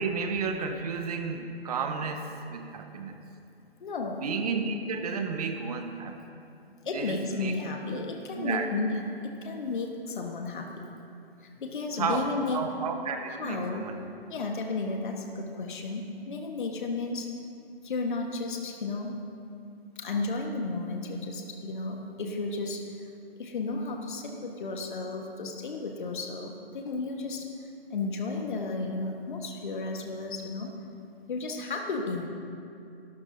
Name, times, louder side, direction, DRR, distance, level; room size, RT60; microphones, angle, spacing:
voice 1, 0.0-3.2 4.2-6.2 6.9-7.5 7.9-8.0 8.4-8.7 12.0-14.0, right 5 dB, 40° right, 5 dB, 1.3 m, -32 dB
voice 2, 3.8-4.2 6.8-10.9 11.4-12.7 13.3-13.9 14.3-17.3 17.8-19.2 20.0-23.1 23.4-27.5 27.9-30.7 31.3-32.3, left 3 dB, 55° left, 2 dB, 1.4 m, -33 dB
26.5 x 12.5 x 2.7 m, 2.6 s
figure-of-eight pair, 135°, 31 cm